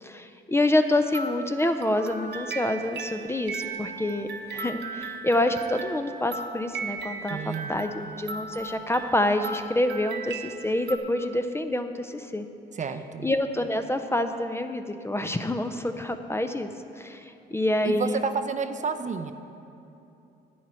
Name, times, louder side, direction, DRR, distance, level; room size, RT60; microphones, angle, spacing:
voice 1, 0.0-7.4 7.7-12.4 13.2-18.2, left 1 dB, 15° left, 7 dB, 0.5 m, -27 dB
sound 1, 0.8-11.0, right 4 dB, 60° right, 1.0 m, -37 dB
voice 2, 7.3-7.7 12.7-13.3 17.8-19.3, right 5 dB, 40° right, 9 dB, 0.5 m, -30 dB
10.0 x 9.5 x 4.4 m, 2.8 s
cardioid pair, 90°, 20 cm